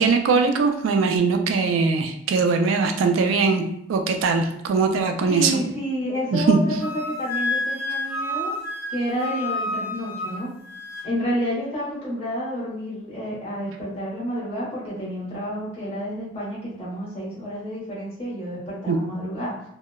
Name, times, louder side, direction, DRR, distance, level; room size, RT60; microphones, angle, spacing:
voice 1, 0.0-3.6 3.9-5.5 6.3-6.6 18.9-19.0, right 4 dB, 90° right, 5 dB, 0.3 m, -21 dB
voice 2, 5.3-8.6 8.9-10.5 11.0-19.5, equal, 30° left, -7 dB, 0.9 m, -29 dB
Wind instrument woodwind instrument, 6.8-11.1, left 2 dB, 10° right, 0.5 m, -29 dB
2.7 x 2.1 x 2.2 m, 0.77 s
head